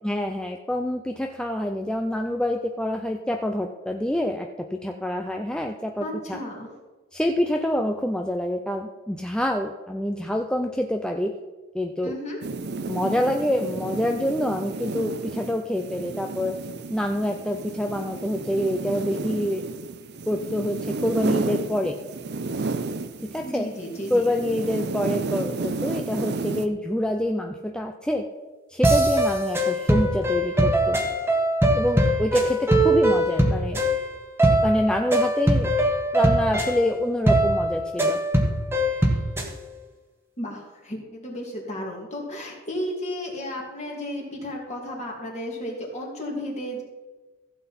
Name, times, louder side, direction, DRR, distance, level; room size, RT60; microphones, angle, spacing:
voice 1, 0.0-6.4 7.1-11.4 11.7-12.1 12.9-16.5 16.9-19.6 20.3-22.0 23.2-23.7 24.1-28.3 28.7-31.0 31.7-33.8 34.6-35.7 36.1-38.2, left 1 dB, 5° left, 3 dB, 0.5 m, -26 dB
voice 2, 6.0-6.7 12.0-12.4 23.4-24.3 40.4-46.8, equal, 35° left, -1 dB, 2.6 m, -33 dB
sound 1, 12.4-23.5 23.8-26.7, right 3 dB, 55° right, 0.6 m, -32 dB
sound 2, 28.8-39.5, right 1 dB, 10° right, 1.4 m, -22 dB
15.5 x 7.8 x 4.3 m, 1.2 s
head